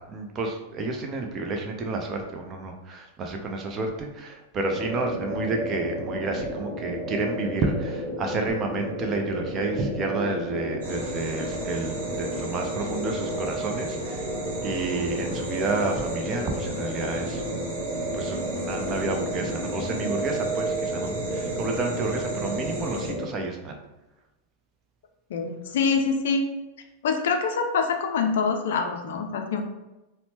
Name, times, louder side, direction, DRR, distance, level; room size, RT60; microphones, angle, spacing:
voice 1, 0.1-14.3 14.6-17.8 18.1-23.8, right 3 dB, 30° right, 3 dB, 0.5 m, -30 dB
sound 1, 4.7-23.2, right 1 dB, 5° right, 1.1 m, -31 dB
sound 2, 10.8-23.1, right 1 dB, 60° right, 0.9 m, -39 dB
voice 2, 25.3-26.5 27.0-29.6, left 5 dB, 60° left, 4 dB, 0.4 m, -25 dB
4.0 x 2.1 x 2.9 m, 1.0 s
figure-of-eight pair, 90°, 0 cm